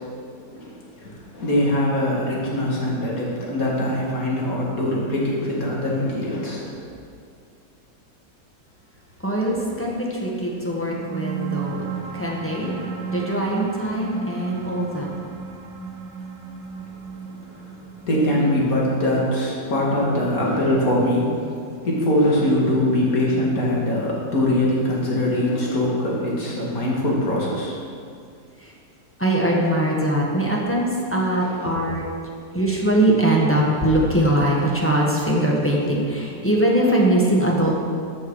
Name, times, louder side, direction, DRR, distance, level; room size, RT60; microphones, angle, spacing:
voice 1, 0.5-6.7 18.1-21.5 21.8-27.8 31.4-31.7, left 1 dB, 55° left, -4 dB, 2.4 m, -22 dB
voice 2, 9.2-11.8 12.1-12.7 13.1-15.1 28.6-28.7 29.2-32.0 32.5-37.7, right 1 dB, 10° left, -4 dB, 1.3 m, -21 dB
sound 1, 10.6-21.6, right 6 dB, 75° right, 1.6 m, -34 dB
13.5 x 5.9 x 4.8 m, 2.3 s
omnidirectional pair, 1.9 m